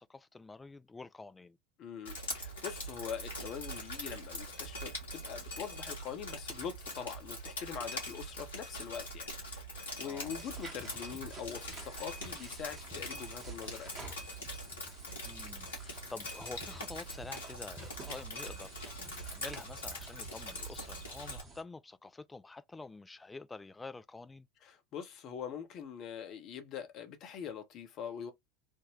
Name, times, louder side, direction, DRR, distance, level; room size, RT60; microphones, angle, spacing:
voice 1, 0.0-1.6 10.0-10.3 15.2-24.5, left 3 dB, 15° left, 0.3 m, -48 dB
voice 2, 1.8-14.1 24.6-28.3, left 7 dB, 45° left, 0.8 m, -43 dB
Drip, 2.0-21.4, equal, 80° left, 1.5 m, -43 dB
sound 1, 10.3-21.6, right 2 dB, 25° right, 1.1 m, -52 dB
3.5 x 2.1 x 3.1 m
figure-of-eight pair, 75°, 0 cm